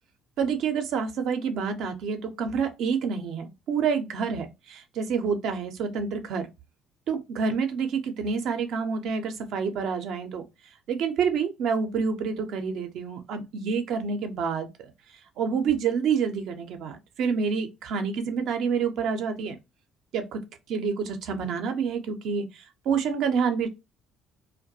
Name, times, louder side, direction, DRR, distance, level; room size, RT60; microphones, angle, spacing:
voice 1, 0.4-6.5 7.1-10.4 10.9-14.9 15.4-19.6 20.1-20.4 20.7-23.7, right 6 dB, 70° right, 0.5 m, -28 dB
2.3 x 2.1 x 2.6 m
supercardioid pair, 75°, 0 cm